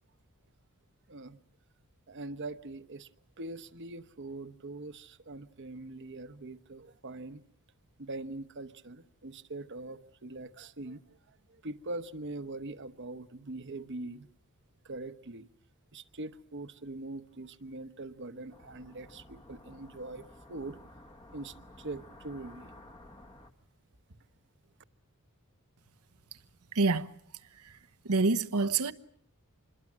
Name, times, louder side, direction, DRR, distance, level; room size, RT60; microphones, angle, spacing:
voice 1, 1.1-1.4 2.1-3.1 3.4-7.4 8.0-14.3 14.8-15.5 15.9-20.8 21.3-22.7, right 2 dB, 55° right, 1.1 m, -42 dB
sound 1, 18.5-23.5, left 1 dB, 25° left, 1.3 m, -53 dB
voice 2, 26.7-27.1 27.6-27.8 28.0-28.9, right 3 dB, 85° right, 1.1 m, -27 dB
26.5 x 21.5 x 7.4 m
head